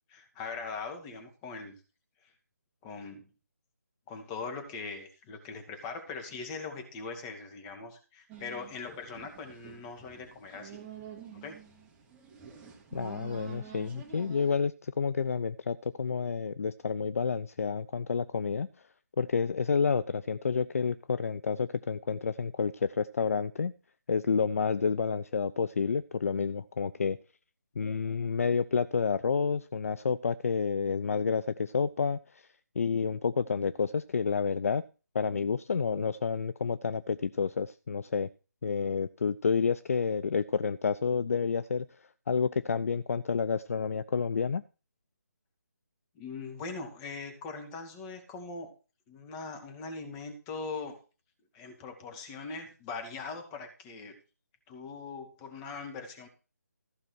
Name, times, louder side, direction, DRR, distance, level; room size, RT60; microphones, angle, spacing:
voice 1, 0.1-1.8 2.8-3.3 4.1-10.8 11.3-11.6 46.2-48.7 49.1-51.0 51.5-54.2 54.7-56.3, left 4 dB, 15° left, 4 dB, 2.2 m, -41 dB
sound 1, 8.3-14.6, right 8 dB, 10° right, 1.8 m, -48 dB
voice 2, 12.9-18.7 19.2-23.7 24.1-27.2 27.8-32.4 32.8-34.8 35.1-38.3 38.6-41.9 42.3-44.6, left 5 dB, 50° left, 15 dB, 0.5 m, -29 dB
14.5 x 5.7 x 6.2 m, 0.34 s
figure-of-eight pair, 150°, 10 cm